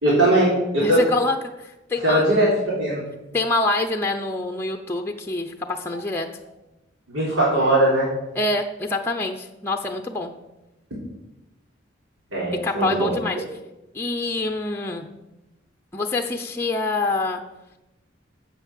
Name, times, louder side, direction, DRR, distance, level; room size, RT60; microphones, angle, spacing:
voice 1, 0.0-1.0 2.0-3.0 7.1-8.1 12.3-13.1, right 1 dB, 90° right, -6 dB, 3.8 m, -20 dB
voice 2, 0.8-2.2 3.3-6.3 8.3-10.3 12.6-13.4 13.9-15.1 15.9-17.4, left 2 dB, 10° left, 4 dB, 0.7 m, -26 dB
9.6 x 7.8 x 7.4 m, 0.98 s
head